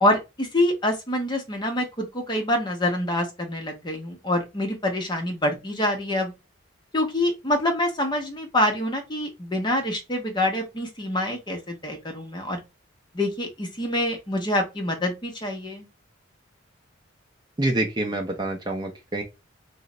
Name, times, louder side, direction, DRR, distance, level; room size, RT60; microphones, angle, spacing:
voice 1, 0.0-6.3 6.9-12.6 13.1-15.9, left 1 dB, 20° left, 0.6 m, -26 dB
voice 2, 17.6-19.2, right 1 dB, 20° right, 0.4 m, -26 dB
3.0 x 2.0 x 3.6 m
head